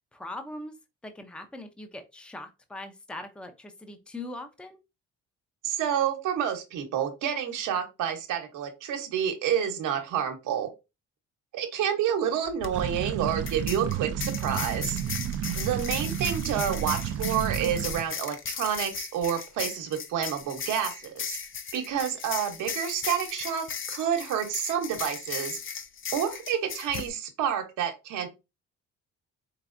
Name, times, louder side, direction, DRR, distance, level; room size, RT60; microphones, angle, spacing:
voice 1, 0.1-0.7 1.0-4.8, left 2 dB, 5° left, 0.7 m, -41 dB
voice 2, 5.6-10.7 11.5-15.0 15.6-21.4 21.7-25.6 26.1-28.3, right 9 dB, 85° right, 1.0 m, -29 dB
sound 1, 12.5-12.7 13.5-27.1, left 6 dB, 45° left, 0.6 m, -37 dB
sound 2, 12.7-18.1, right 10 dB, 55° right, 0.4 m, -31 dB
4.6 x 3.4 x 2.5 m
cardioid pair, 90°, 30 cm